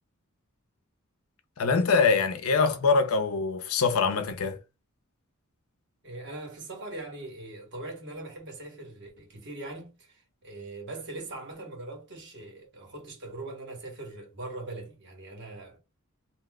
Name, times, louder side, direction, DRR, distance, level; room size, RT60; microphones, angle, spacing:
voice 1, 1.6-4.6, left 4 dB, 80° left, 0.6 m, -24 dB
voice 2, 6.0-15.8, right 2 dB, 55° right, 1.5 m, -41 dB
2.7 x 2.1 x 3.6 m
head